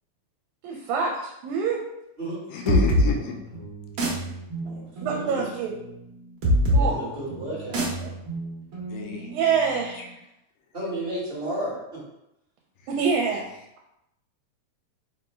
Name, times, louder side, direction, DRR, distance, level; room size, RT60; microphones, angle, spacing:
voice 1, 0.6-1.8 4.7-4.8 5.0-5.8 6.7-7.0 8.0-8.1 9.3-10.1 12.9-13.5, right 5 dB, 80° right, 0 dB, 1.9 m, -26 dB
voice 2, 2.5-3.4 8.9-9.3, left 4 dB, 80° left, 2 dB, 1.8 m, -28 dB
sound 1, 2.7-10.0, equal, 60° right, 1.4 m, -26 dB
voice 3, 4.6-5.5 6.7-8.1 10.7-12.0, right 1 dB, 35° right, -9 dB, 0.8 m, -33 dB
4.7 x 2.2 x 4.2 m, 0.85 s
omnidirectional pair, 3.4 m